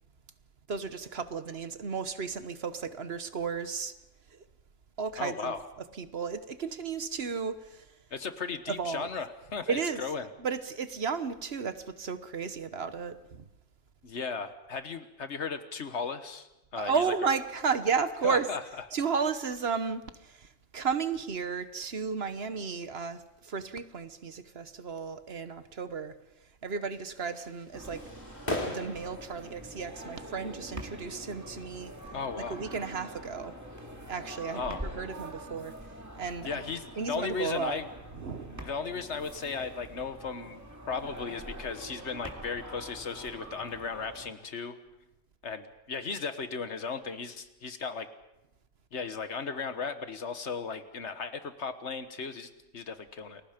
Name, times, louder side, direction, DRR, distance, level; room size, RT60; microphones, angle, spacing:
voice 1, 0.7-3.9 4.3-4.4 5.0-5.5 5.9-7.9 8.7-9.1 9.7-10.0 10.4-13.4 16.8-18.5 18.9-26.2 26.6-28.0 28.6-31.9 32.5-33.5 34.1-35.7 36.2-36.6 37.0-37.8 38.1-38.7, right 5 dB, 60° right, 11 dB, 1.3 m, -33 dB
voice 2, 5.2-5.6 8.1-10.3 14.0-17.3 18.2-18.6 32.1-32.6 34.5-34.8 36.4-37.9 38.6-40.6 40.9-44.8 45.4-48.1 48.9-53.4, left 5 dB, 70° left, 10 dB, 1.6 m, -36 dB
sound 1, 26.9-37.4, left 1 dB, 35° left, 3.6 m, -44 dB
sound 2, 27.7-44.3, right 1 dB, 15° right, 2.3 m, -44 dB
29.5 x 21.0 x 5.2 m, 0.92 s
omnidirectional pair, 1.2 m